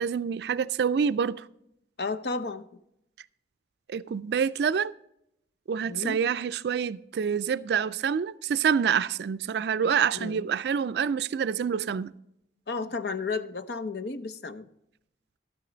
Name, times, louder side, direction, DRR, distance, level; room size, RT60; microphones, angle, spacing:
voice 1, 0.0-1.5 3.9-4.9 5.7-12.1, right 7 dB, 70° right, 0.3 m, -27 dB
voice 2, 2.0-2.7 5.9-6.2 10.1-10.4 12.7-14.7, left 4 dB, 70° left, 0.7 m, -33 dB
12.5 x 9.3 x 3.8 m
head